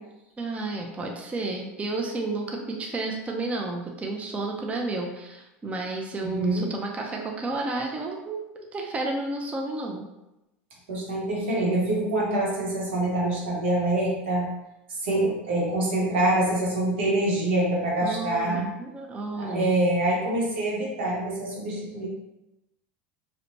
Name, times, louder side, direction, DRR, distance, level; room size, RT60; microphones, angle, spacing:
voice 1, 0.4-10.1 18.0-19.8, right 2 dB, 20° right, 1 dB, 0.4 m, -31 dB
voice 2, 6.2-6.7 10.9-14.5 14.9-18.7 19.3-22.1, right 1 dB, 85° right, -3 dB, 0.8 m, -25 dB
2.8 x 2.1 x 2.6 m, 0.94 s
hypercardioid pair, 90°, 6 cm